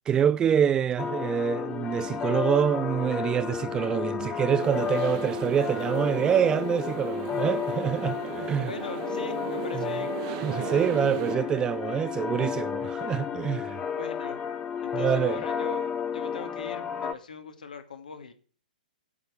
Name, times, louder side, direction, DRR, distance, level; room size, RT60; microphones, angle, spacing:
voice 1, 0.1-8.7 10.4-13.8 14.9-15.4, right 8 dB, 15° right, 0.4 m, -26 dB
sound 1, 1.0-17.1, left 8 dB, 20° left, 0.7 m, -32 dB
sound 2, 4.6-11.4, right 11 dB, 40° right, 1.2 m, -36 dB
voice 2, 8.6-10.1 10.6-11.1 13.9-14.4 14.8-18.3, left 5 dB, 65° left, 2.0 m, -40 dB
8.6 x 6.6 x 8.1 m
figure-of-eight pair, 115°, 5 cm